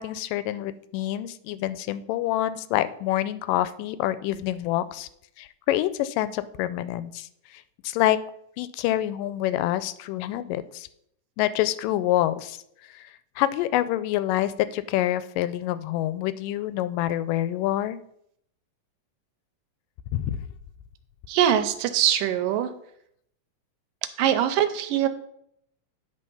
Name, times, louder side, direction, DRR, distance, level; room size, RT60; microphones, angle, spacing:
voice 1, 0.0-5.1 5.4-7.3 7.8-8.2 8.6-10.9 11.4-12.6 13.4-18.0 20.1-20.4, left 13 dB, 85° left, 14 dB, 2.2 m, -26 dB
voice 2, 21.3-22.7 24.2-25.1, right 10 dB, 90° right, 10 dB, 2.3 m, -22 dB
9.9 x 4.4 x 5.4 m, 0.71 s
omnidirectional pair, 3.8 m